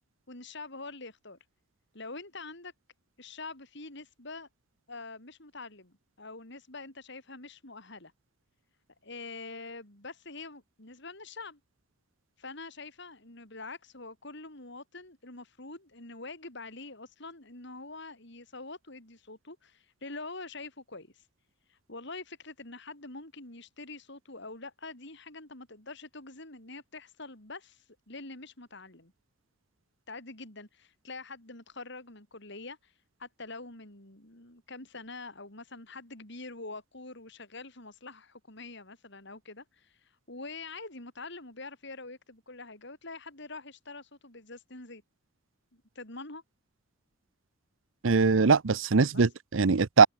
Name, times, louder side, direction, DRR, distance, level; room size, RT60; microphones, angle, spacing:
voice 1, 0.3-1.4 1.9-2.7 3.2-4.5 4.9-8.1 9.0-11.6 12.4-21.3 21.7-29.1 30.1-32.9 33.2-45.0 45.7-46.4 49.1-49.2, left 3 dB, 60° left, 6.3 m, -45 dB
voice 2, 48.0-50.1, right 4 dB, 75° right, 0.7 m, -22 dB
head